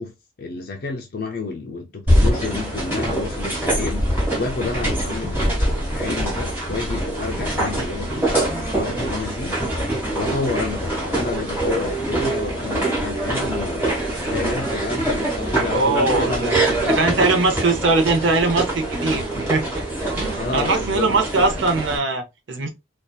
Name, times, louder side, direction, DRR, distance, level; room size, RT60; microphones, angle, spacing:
voice 1, 0.0-9.6 10.1-13.8 14.2-17.0 20.4-21.5, left 4 dB, 50° left, 0.4 m, -30 dB
sound 1, 2.1-22.0, right 1 dB, 10° right, 1.1 m, -24 dB
voice 2, 15.7-16.5 17.0-19.8 20.2-22.7, right 3 dB, 75° right, 0.6 m, -21 dB
2.6 x 2.3 x 2.2 m
head